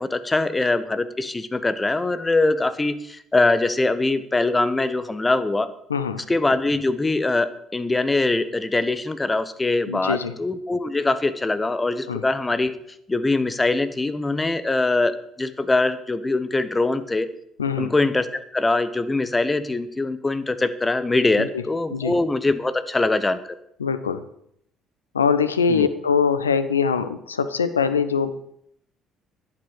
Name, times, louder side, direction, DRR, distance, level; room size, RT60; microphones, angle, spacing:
voice 1, 0.0-5.7 6.3-12.7 13.1-17.3 17.8-23.4 25.7-25.9, left 2 dB, 20° left, 12 dB, 1.1 m, -23 dB
voice 2, 5.9-6.2 9.9-10.3 12.1-12.2 17.6-17.9 21.4-21.6 21.9-22.2 23.8-24.2 25.1-28.3, left 6 dB, 85° left, 12 dB, 0.7 m, -23 dB
10.0 x 8.4 x 6.6 m, 0.71 s
figure-of-eight pair, 50°, 0 cm